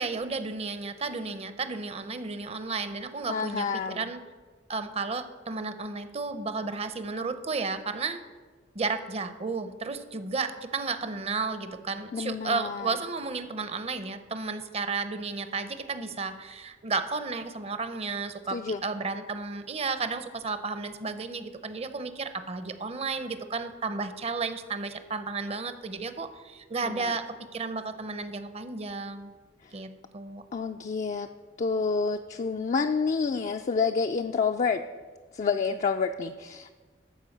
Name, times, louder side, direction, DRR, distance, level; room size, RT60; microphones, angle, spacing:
voice 1, 0.0-3.7 3.9-4.2 4.7-8.2 8.7-29.3 29.7-30.4, right 4 dB, 35° right, 11 dB, 0.7 m, -33 dB
voice 2, 3.3-4.1 12.1-13.0 18.5-18.8 26.8-27.1 29.6-29.8 30.5-31.3 31.6-34.8 35.3-36.8, left 5 dB, 40° left, 5 dB, 0.3 m, -29 dB
13.0 x 4.5 x 7.2 m, 1.4 s
head